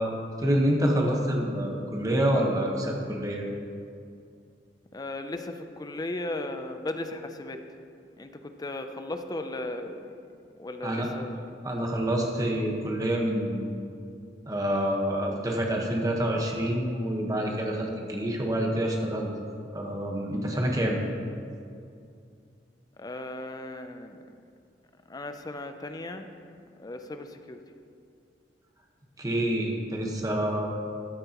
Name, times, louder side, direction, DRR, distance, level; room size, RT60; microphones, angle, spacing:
voice 1, 0.0-3.4 10.8-11.1 11.6-13.7 14.5-19.3 19.7-21.0 29.2-30.7, right 1 dB, 20° right, 0 dB, 1.3 m, -27 dB
voice 2, 4.9-7.6 8.2-10.2 10.5-11.4 23.0-24.3 25.1-26.3 26.8-27.6, left 2 dB, 20° left, 7 dB, 0.5 m, -36 dB
13.5 x 9.2 x 3.0 m, 2.4 s
head